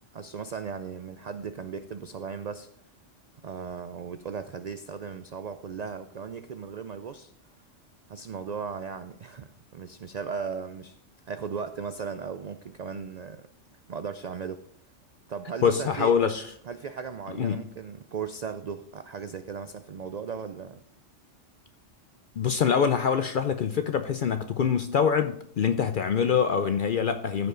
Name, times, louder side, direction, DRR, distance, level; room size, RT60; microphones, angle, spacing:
voice 1, 0.1-2.7 3.4-7.3 8.1-11.0 11.3-13.5 13.9-14.7 15.3-16.2 16.7-20.8, right 6 dB, 80° right, 10 dB, 0.3 m, -37 dB
voice 2, 15.6-16.5 17.4-17.6 22.4-27.5, left 7 dB, 60° left, 9 dB, 0.5 m, -24 dB
15.0 x 5.4 x 3.8 m, 0.67 s
omnidirectional pair, 1.3 m